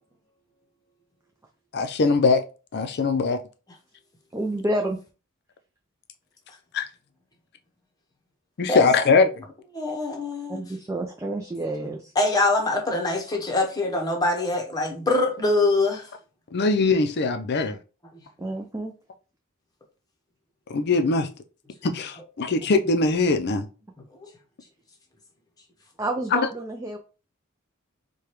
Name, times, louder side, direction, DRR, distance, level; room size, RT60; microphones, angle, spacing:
voice 1, 1.7-2.4 2.7-3.4 6.7-6.9 8.6-9.3 16.5-17.8 20.7-21.3 21.8-23.7 26.3-26.4, left 3 dB, 50° left, 0.5 m, -21 dB
voice 2, 4.3-5.0 10.5-12.1 18.4-18.9 26.0-27.0, right 1 dB, 15° right, 0.4 m, -29 dB
voice 3, 9.7-10.6 12.2-16.1 24.2-24.3, left 2 dB, 15° left, 0.9 m, -24 dB
4.8 x 2.3 x 3.0 m
head